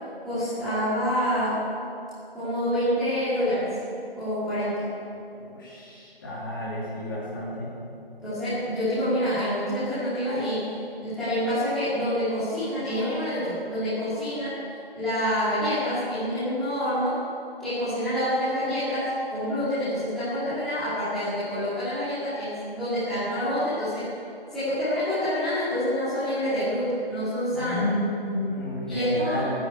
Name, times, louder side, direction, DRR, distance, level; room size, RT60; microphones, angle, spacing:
voice 1, 0.2-1.6 2.3-3.7 4.1-4.9 8.2-10.7 11.0-14.6 14.9-17.2 17.6-24.1 24.5-27.9 28.9-29.5, equal, ahead, -18 dB, 2.3 m, -27 dB
voice 2, 5.3-7.7 27.5-29.5, left 1 dB, 20° left, -6 dB, 3.0 m, -31 dB
15.0 x 9.7 x 8.2 m, 2.6 s
figure-of-eight pair, 170°, 30 cm